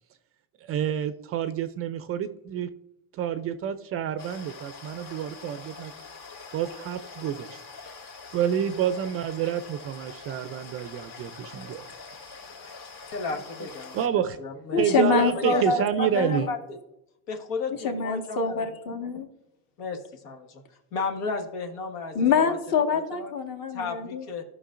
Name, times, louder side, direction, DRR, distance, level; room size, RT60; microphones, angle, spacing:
voice 1, 0.6-2.7 3.1-5.9 6.5-7.6 8.3-11.8 13.3-13.4 13.9-14.4 14.8-16.5, right 9 dB, 30° right, 11 dB, 0.4 m, -28 dB
sound 1, 4.2-14.1, left 4 dB, 65° left, 2.5 m, -44 dB
voice 2, 13.1-14.0 14.4-14.8 15.3-16.8 17.3-18.6 19.8-20.6 20.9-22.6 22.9-23.3 23.7-24.4, left 4 dB, 80° left, 3 dB, 1.7 m, -33 dB
voice 3, 14.7-16.5 17.8-19.3 22.1-24.3, left 5 dB, 45° left, 4 dB, 1.7 m, -26 dB
14.0 x 6.2 x 2.5 m, 0.87 s
supercardioid pair, 130°, 46 cm